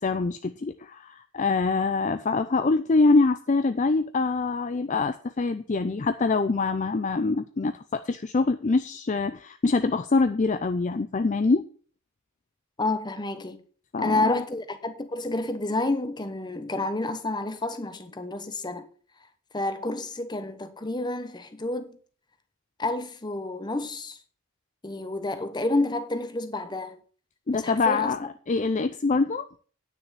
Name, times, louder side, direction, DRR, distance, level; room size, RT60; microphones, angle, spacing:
voice 1, 0.0-11.6 13.9-14.4 27.5-29.5, left 3 dB, 35° left, 0.4 m, -24 dB
voice 2, 12.8-13.6 14.0-18.9 19.5-22.0 22.8-24.2 24.8-27.0 27.5-28.1, left 2 dB, 20° left, 1.0 m, -29 dB
9.8 x 6.4 x 6.6 m
head